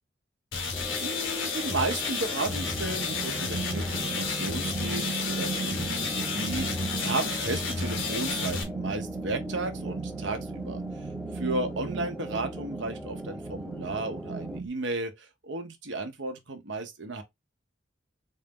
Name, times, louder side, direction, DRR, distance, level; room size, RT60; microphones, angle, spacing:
sound 1, 0.5-8.6, left 5 dB, 85° left, 1.2 m, -32 dB
sound 2, 0.7-14.6, equal, ahead, 0.4 m, -41 dB
voice 1, 1.0-11.1 11.4-17.2, right 2 dB, 70° right, 1.0 m, -34 dB
sound 3, 2.5-14.7, right 4 dB, 50° right, 0.5 m, -36 dB
4.0 x 2.7 x 3.6 m
head